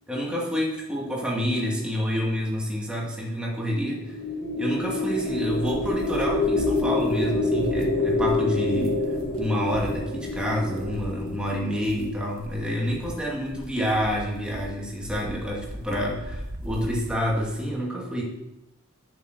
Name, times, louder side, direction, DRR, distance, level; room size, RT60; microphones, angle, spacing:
voice 1, 0.1-4.2 4.6-9.0 9.3-18.2, equal, 5° right, -3 dB, 2.2 m, -28 dB
sound 1, 3.9-12.3, left 2 dB, 40° left, 2.1 m, -27 dB
sound 2, 5.2-17.6, right 1 dB, 70° right, 1.4 m, -40 dB
8.7 x 7.0 x 6.7 m, 0.92 s
head